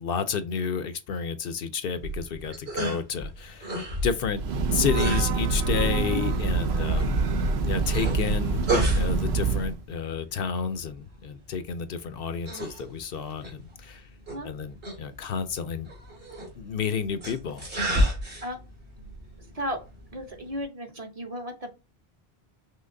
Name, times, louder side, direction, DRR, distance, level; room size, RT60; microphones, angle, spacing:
voice 1, 0.0-3.8 4.0-4.4 4.7-7.1 7.6-8.6 8.9-14.1 14.4-15.9 16.6-18.1, left 6 dB, 70° left, 0.7 m, -31 dB
sound 1, 1.9-20.6, right 1 dB, 65° right, 2.4 m, -34 dB
Breathing / Train, 4.2-9.8, right 4 dB, 85° right, 1.0 m, -25 dB
voice 2, 20.1-21.7, equal, 40° right, 0.9 m, -34 dB
5.7 x 3.1 x 2.6 m
omnidirectional pair, 1.1 m